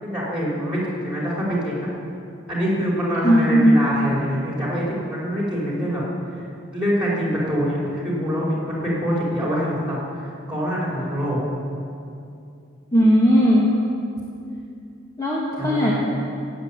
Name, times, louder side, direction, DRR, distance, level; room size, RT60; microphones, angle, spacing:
voice 1, 0.0-1.9 2.5-6.0 6.4-6.5 6.7-11.4 15.6-15.9, equal, 5° right, -5 dB, 5.0 m, -25 dB
voice 2, 3.2-3.7 12.9-13.7 15.2-15.9, equal, 15° left, -6 dB, 1.9 m, -17 dB
17.0 x 8.5 x 8.9 m, 2.6 s
head